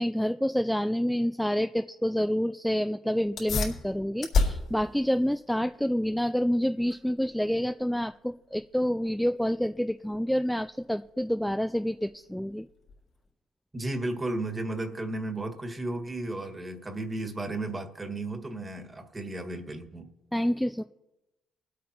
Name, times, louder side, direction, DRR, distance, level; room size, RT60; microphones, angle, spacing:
voice 1, 0.0-12.7 20.3-20.8, equal, 5° left, 10 dB, 0.4 m, -28 dB
sound 1, 3.2-13.3, left 4 dB, 65° left, 3.8 m, -35 dB
voice 2, 13.7-20.1, right 2 dB, 20° right, 5 dB, 1.7 m, -34 dB
21.0 x 8.4 x 2.9 m, 1.0 s
cardioid pair, 80°, 0 cm